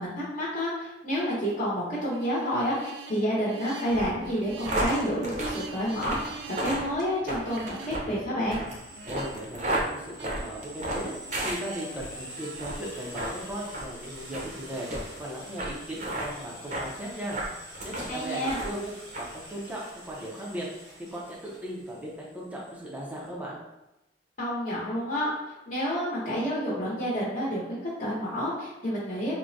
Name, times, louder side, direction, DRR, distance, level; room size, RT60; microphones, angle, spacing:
voice 1, 0.0-8.6 18.1-18.6 24.4-29.3, equal, 40° left, -8 dB, 0.9 m, -29 dB
sound 1, 2.1-12.7, right 5 dB, 60° right, 0.3 m, -45 dB
sound 2, 3.9-12.1 12.5-12.8 13.1-13.3 13.7-13.9 14.3-14.5 14.9-15.0 15.6-15.7 16.0-16.3 16.7-16.9 17.3-18.1 18.4-18.8 19.1-19.3, right 1 dB, 40° right, 0.7 m, -32 dB
sound 3, 8.6-23.3, equal, 85° right, 1.1 m, -46 dB
voice 2, 9.1-11.1 11.4-14.9 15.2-17.4 17.8-20.7 21.0-23.6, right 1 dB, 10° right, -5 dB, 0.5 m, -37 dB
4.5 x 2.1 x 2.6 m, 0.94 s
head